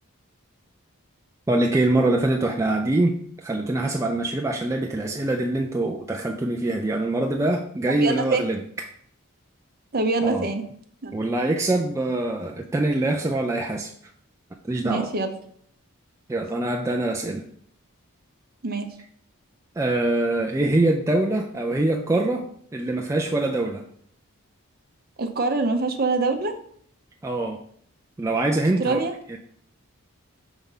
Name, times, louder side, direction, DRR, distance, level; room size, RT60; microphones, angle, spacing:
voice 1, 1.5-8.6 10.2-10.5 11.1-14.1 14.7-15.1 16.3-17.4 19.8-22.5 22.7-23.8 27.2-27.6 28.2-29.0 29.3-29.4, right 2 dB, 15° right, 1 dB, 0.3 m, -24 dB
voice 2, 8.0-8.4 9.9-10.6 11.0-11.1 14.8-15.3 18.6-18.9 25.2-26.6 28.8-29.1, right 3 dB, 40° right, 6 dB, 0.7 m, -24 dB
5.2 x 3.5 x 5.5 m, 0.62 s
head